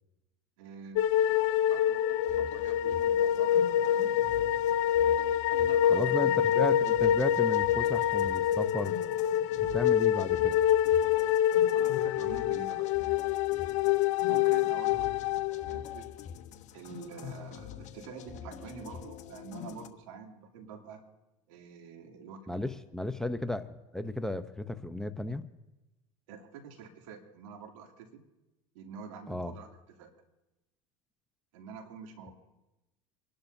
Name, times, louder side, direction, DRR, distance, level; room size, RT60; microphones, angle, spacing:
voice 1, 0.6-1.3 1.7-4.2 5.5-6.7 9.8-9.9 11.7-12.9 14.3-15.1 15.7-16.2 16.7-21.0 21.5-22.6 26.3-28.2 28.7-29.7 30.0-30.1 31.5-32.4, right 6 dB, 80° right, 1 dB, 2.8 m, -47 dB
sound 1, 1.0-16.1, left 11 dB, 80° left, 0.7 m, -26 dB
sound 2, 2.2-19.9, left 9 dB, 50° left, 1.1 m, -46 dB
voice 2, 5.9-9.0 9.6-10.5 22.5-25.4 29.3-29.5, left 1 dB, 5° left, 10 dB, 0.7 m, -34 dB
28.0 x 11.5 x 2.7 m, 1.0 s
supercardioid pair, 95°, 16 cm